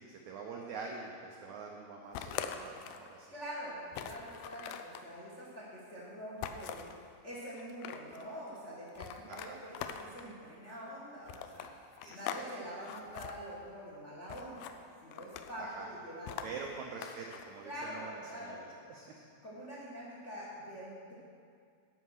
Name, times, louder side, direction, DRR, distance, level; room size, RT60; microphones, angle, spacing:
voice 1, 0.0-3.3 9.3-9.6 12.0-12.5 15.6-15.9 16.4-18.1 18.4-18.6 18.9-19.2, right 4 dB, 90° right, 1 dB, 1.6 m, -45 dB
sound 1, 2.1-3.1 3.5-3.6 3.9-5.1 6.4-7.0 7.6-8.2 9.0-10.3 11.3-12.5 12.7-13.3 14.3-14.8 15.1-15.6 16.3-17.5, left 9 dB, 80° left, 2.2 m, -42 dB
voice 2, 3.3-6.8 7.2-11.7 12.1-14.7 15.0-16.7 17.6-18.7 19.4-21.1, equal, 60° left, -6 dB, 0.7 m, -45 dB
11.5 x 5.6 x 6.4 m, 2.3 s
omnidirectional pair, 4.3 m